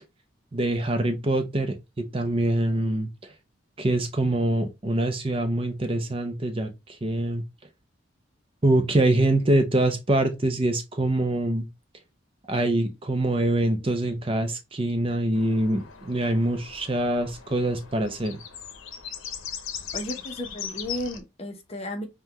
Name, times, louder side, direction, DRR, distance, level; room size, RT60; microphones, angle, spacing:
voice 1, 0.5-3.3 3.8-7.4 8.6-11.7 12.5-18.4, right 1 dB, 30° right, 0.5 m, -24 dB
sound 1, 15.3-21.2, left 8 dB, 80° left, 0.7 m, -39 dB
voice 2, 19.9-22.1, left 1 dB, 30° left, 0.8 m, -34 dB
5.5 x 2.2 x 2.9 m
head